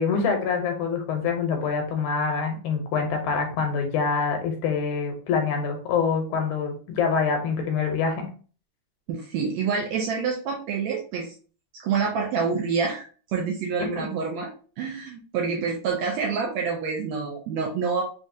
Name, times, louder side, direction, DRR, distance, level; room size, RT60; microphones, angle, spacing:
voice 1, 0.0-8.3 13.8-14.1, left 5 dB, 75° left, 4 dB, 2.0 m, -25 dB
voice 2, 9.1-11.3 11.7-14.5 14.8-18.0, right 5 dB, 85° right, 0 dB, 1.6 m, -27 dB
5.2 x 2.4 x 2.6 m, 0.39 s
omnidirectional pair, 3.6 m